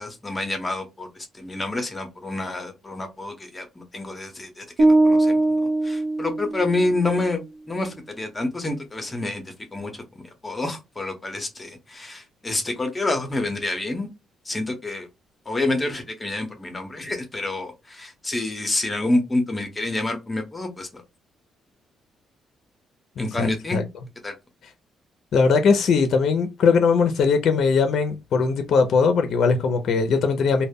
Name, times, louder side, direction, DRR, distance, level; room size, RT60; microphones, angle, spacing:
voice 1, 0.0-5.4 5.8-7.4 7.7-9.4 9.7-10.0 10.4-14.1 14.5-15.1 15.5-21.0 23.2-23.8 24.2-24.3, left 2 dB, 20° left, 0.7 m, -28 dB
sound 1, 4.8-7.0, right 2 dB, 55° right, 0.6 m, -20 dB
voice 2, 23.2-23.8 25.3-30.7, left 5 dB, 65° left, 0.4 m, -20 dB
2.1 x 2.0 x 3.4 m
cardioid pair, 90°, 0 cm